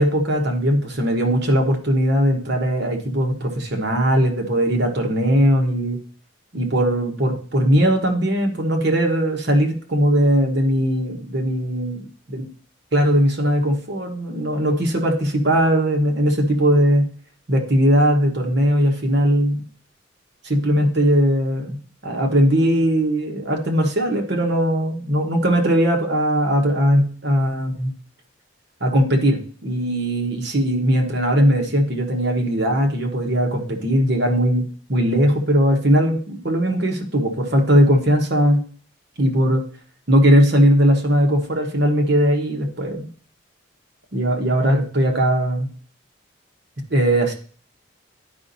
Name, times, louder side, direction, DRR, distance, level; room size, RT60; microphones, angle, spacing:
voice 1, 0.0-6.0 6.5-12.0 12.9-17.1 17.5-19.6 20.4-21.8 22.0-27.9 28.8-38.6 39.2-39.6 40.1-43.1 44.1-45.7 46.9-47.3, equal, 55° right, 1 dB, 1.3 m, -19 dB
12.0 x 5.1 x 2.7 m, 0.43 s
head